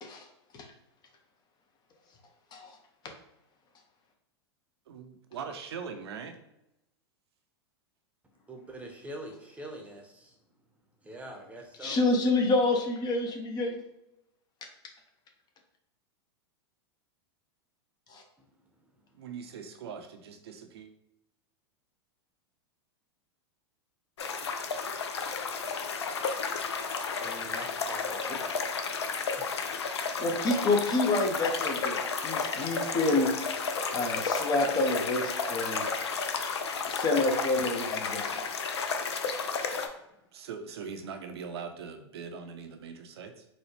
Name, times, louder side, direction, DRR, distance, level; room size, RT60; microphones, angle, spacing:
voice 1, 4.9-6.4 19.1-20.9 40.3-43.5, right 6 dB, 70° right, 7 dB, 0.6 m, -41 dB
voice 2, 8.5-10.3 11.0-12.0 26.7-26.9 27.2-28.7 29.3-29.7, right 1 dB, 10° right, 1 dB, 0.9 m, -44 dB
voice 3, 11.8-13.8 18.1-18.2 28.3-28.4 30.2-33.3 33.9-35.8 36.9-38.4, left 2 dB, 30° left, 3 dB, 0.8 m, -28 dB
sound 1, 24.2-39.9, left 5 dB, 80° left, 0.5 m, -32 dB
4.1 x 2.3 x 3.2 m, 0.88 s
hypercardioid pair, 100°, 14 cm